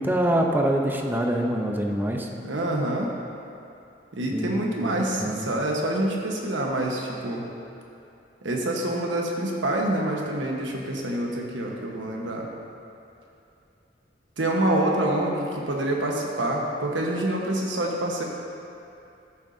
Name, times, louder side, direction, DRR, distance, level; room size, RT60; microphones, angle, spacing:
voice 1, 0.0-2.3 4.3-5.5, right 1 dB, 10° right, 1 dB, 0.6 m, -25 dB
voice 2, 2.4-3.1 4.1-7.4 8.4-12.5 14.4-18.2, right 1 dB, 85° right, -1 dB, 1.2 m, -26 dB
13.5 x 7.1 x 2.7 m, 2.7 s
head